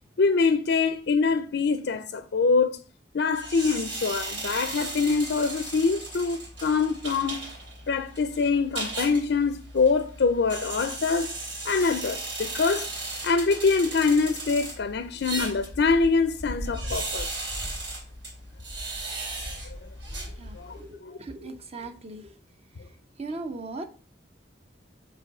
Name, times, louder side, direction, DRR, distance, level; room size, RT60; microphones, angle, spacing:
voice 1, 0.2-2.8 3.1-7.4 7.9-11.3 11.6-12.9 13.2-17.4 20.6-21.2, left 4 dB, 60° left, 0.5 m, -24 dB
sound 1, 3.3-20.9, right 2 dB, 65° right, 3.0 m, -36 dB
voice 2, 20.4-22.3 23.2-23.9, right 3 dB, 35° right, 0.8 m, -38 dB
7.4 x 3.0 x 5.3 m
head